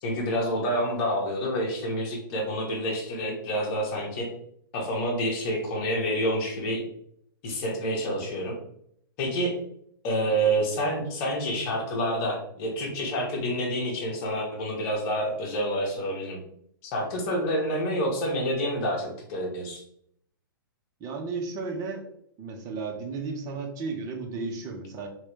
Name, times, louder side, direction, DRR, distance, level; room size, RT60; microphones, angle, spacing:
voice 1, 0.0-4.3 4.7-6.8 7.4-8.5 9.2-9.5 10.0-16.4 16.8-19.8, equal, 40° left, -1 dB, 1.4 m, -28 dB
voice 2, 21.0-22.1 22.4-25.1, right 4 dB, 30° right, 2 dB, 0.8 m, -34 dB
3.0 x 3.0 x 3.2 m, 0.69 s
hypercardioid pair, 120°, 12 cm